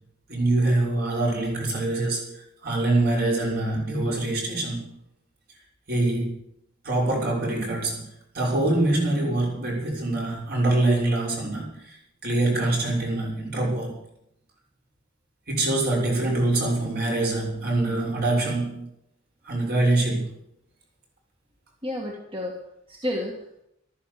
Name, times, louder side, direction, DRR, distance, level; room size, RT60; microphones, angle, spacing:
voice 1, 0.3-4.9 5.9-6.4 6.8-8.1 8.3-14.0 15.5-18.9 19.4-20.3, right 2 dB, 50° right, -2 dB, 6.1 m, -24 dB
voice 2, 21.8-23.6, left 1 dB, 25° right, 0 dB, 2.1 m, -32 dB
14.0 x 13.5 x 7.0 m, 0.76 s
head